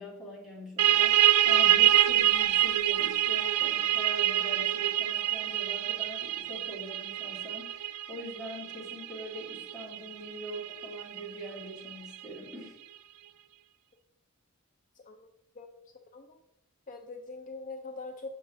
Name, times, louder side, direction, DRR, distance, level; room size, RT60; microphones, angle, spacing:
voice 1, 0.0-12.8, right 1 dB, ahead, -6 dB, 2.1 m, -43 dB
sound 1, 0.8-12.1, right 12 dB, 80° right, 0.4 m, -26 dB
voice 2, 14.9-15.3 15.5-16.4 16.9-18.3, left 3 dB, 35° left, 5 dB, 0.5 m, -43 dB
7.8 x 6.2 x 3.5 m, 0.85 s
head